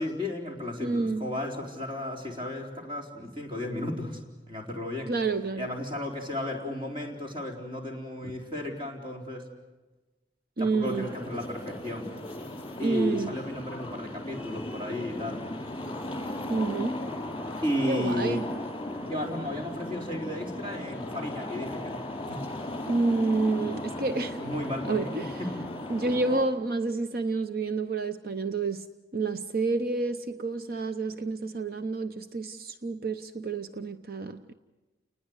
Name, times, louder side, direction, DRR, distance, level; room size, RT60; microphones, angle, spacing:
voice 1, 0.0-4.2 4.5-5.1 5.6-9.5 10.6-12.1 12.8-15.4 17.6-18.4 19.0-22.0 24.4-25.1 25.4-25.5, left 1 dB, 30° right, 4.2 m, -34 dB
voice 2, 0.8-1.3 5.1-5.8 8.2-8.3 10.6-11.1 12.8-13.3 16.5-17.0 17.9-18.4 20.6-20.7 22.9-24.5 24.9-25.3 25.9-28.9 29.1-34.5, right 3 dB, 55° right, 0.8 m, -29 dB
sound 1, 10.8-26.4, left 1 dB, 25° left, 4.4 m, -37 dB
30.0 x 20.0 x 8.1 m
head